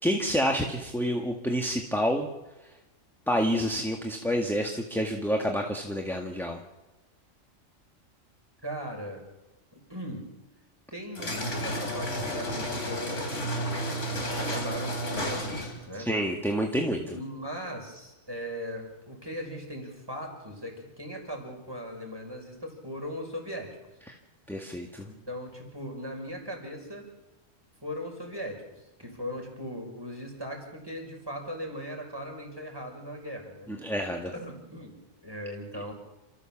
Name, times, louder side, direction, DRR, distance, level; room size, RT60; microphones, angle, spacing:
voice 1, 0.0-2.3 3.3-6.6 16.0-17.2 24.1-24.2 24.5-25.1 33.7-34.3, equal, ahead, 2 dB, 1.8 m, -28 dB
voice 2, 8.6-9.3 9.9-10.3 10.9-16.1 17.1-23.8 25.1-27.0 27.8-28.6 29.0-33.7 34.2-35.0 35.2-35.9, equal, 15° right, 2 dB, 5.8 m, -39 dB
sound 1, 11.1-15.9, equal, 60° left, 3.6 m, -32 dB
29.0 x 14.5 x 7.5 m, 1.1 s
omnidirectional pair, 1.4 m